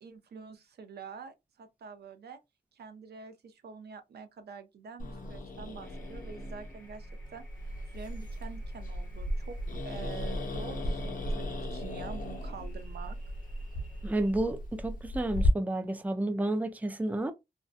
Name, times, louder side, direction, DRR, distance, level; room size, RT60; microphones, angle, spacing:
voice 1, 0.0-2.4 2.7-7.4 7.9-9.6 9.8-13.2, right 6 dB, 75° right, 0.5 m, -46 dB
Growling, 5.0-15.5, left 1 dB, 55° left, 0.8 m, -36 dB
sound 1, 5.8-14.3, left 1 dB, 5° left, 1.2 m, -59 dB
voice 2, 14.0-17.3, right 1 dB, 10° right, 0.4 m, -31 dB
2.6 x 2.1 x 2.4 m
cardioid pair, 85°, 17 cm